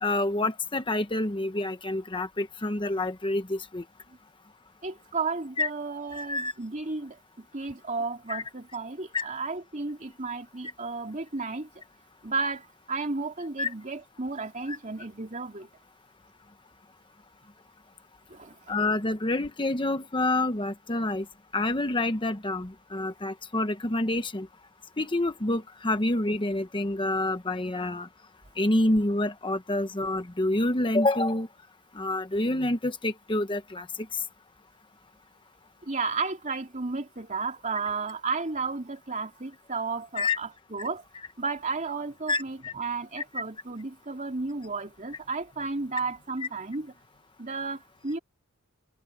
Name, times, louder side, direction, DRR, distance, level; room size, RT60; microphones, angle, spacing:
voice 1, 0.0-3.8 5.6-5.7 6.1-6.5 8.3-8.4 9.1-9.3 13.6-13.7 14.7-14.8 18.7-21.2 21.5-24.5 25.0-28.1 28.6-31.5 31.9-33.9 34.1-34.2 40.2-40.4 42.3-42.7, left 2 dB, 25° left, 1.0 m, -27 dB
voice 2, 4.8-11.7 12.2-15.7 18.3-18.6 35.8-41.0 41.4-46.9 47.4-48.2, right 4 dB, 35° right, 2.6 m, -33 dB
head